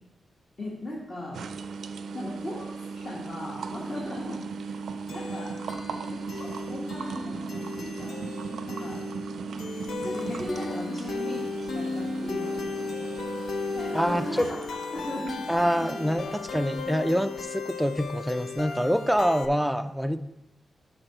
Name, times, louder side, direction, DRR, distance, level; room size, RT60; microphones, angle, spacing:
voice 1, 0.6-1.5 2.1-4.8 5.1-5.6 6.1-9.0 9.9-13.3 13.7-14.6 14.9-16.4, left 1 dB, 40° left, -5 dB, 1.5 m, -38 dB
sound 1, 1.3-16.0, right 5 dB, 85° right, 0.4 m, -37 dB
sound 2, 5.1-19.5, left 4 dB, 85° left, 0.6 m, -36 dB
voice 2, 13.9-14.5 15.5-20.2, equal, ahead, 8 dB, 0.3 m, -26 dB
8.7 x 3.9 x 6.5 m, 0.89 s
wide cardioid pair, 160°, 0 cm